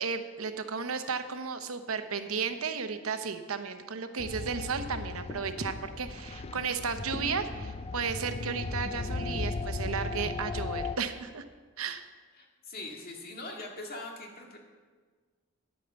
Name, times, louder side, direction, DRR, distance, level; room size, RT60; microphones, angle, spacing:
voice 1, 0.0-11.4 11.8-12.0, right 5 dB, 85° right, 8 dB, 0.9 m, -34 dB
sound 1, 4.2-11.0, left 3 dB, 30° left, 0.4 m, -36 dB
voice 2, 12.4-14.6, left 2 dB, 45° left, 0 dB, 2.0 m, -42 dB
10.0 x 8.6 x 7.0 m, 1.5 s
head